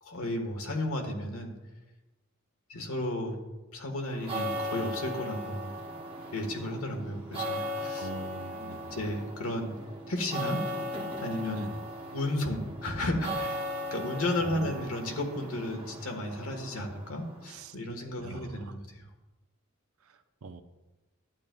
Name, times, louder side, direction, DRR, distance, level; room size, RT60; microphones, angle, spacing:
voice 1, 0.0-1.5 2.7-3.4 3.7-5.7 6.3-8.1 8.9-9.7 10.1-10.6 11.2-11.6 12.1-13.7 13.9-19.0, left 1 dB, 90° left, 3 dB, 1.4 m, -33 dB
sound 1, 4.0-17.6, equal, 25° right, 1.1 m, -38 dB
voice 2, 8.0-9.0 11.5-11.8 14.4-14.8 16.7-16.9 17.5-17.8 18.2-18.8 20.0-20.6, right 3 dB, 80° right, 9 dB, 0.6 m, -43 dB
12.0 x 9.0 x 2.3 m, 1.1 s
head